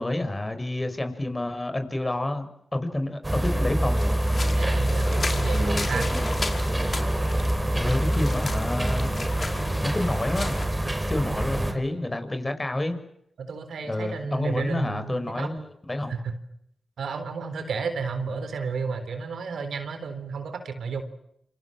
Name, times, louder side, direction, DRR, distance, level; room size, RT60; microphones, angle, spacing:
voice 1, 0.0-4.0 7.7-9.1 9.6-10.6 11.1-13.0 13.8-16.1, left 1 dB, 30° left, 8 dB, 6.6 m, -29 dB
sound 1, 3.2-11.7, right 1 dB, 15° right, 5.5 m, -25 dB
sound 2, 4.0-10.7, left 3 dB, 50° left, 4.9 m, -36 dB
voice 2, 4.4-6.1 11.7-11.8 13.4-15.5 16.1-16.3 17.0-21.0, right 5 dB, 85° right, 9 dB, 3.8 m, -32 dB
27.5 x 27.0 x 7.7 m, 0.76 s
cardioid pair, 45°, 0 cm